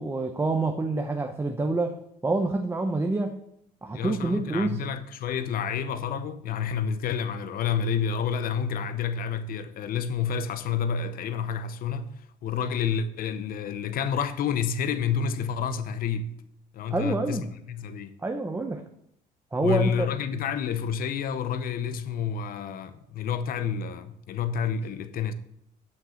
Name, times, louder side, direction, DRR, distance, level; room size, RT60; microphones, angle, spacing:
voice 1, 0.0-1.9 2.2-3.4 3.8-4.8 16.9-17.5 18.2-18.8 19.5-20.1, right 2 dB, 15° right, 0.7 m, -27 dB
voice 2, 3.9-12.1 12.4-16.3 16.7-18.1 19.6-25.3, left 7 dB, 60° left, 0.8 m, -29 dB
7.4 x 6.5 x 7.0 m
cardioid pair, 110°, 17 cm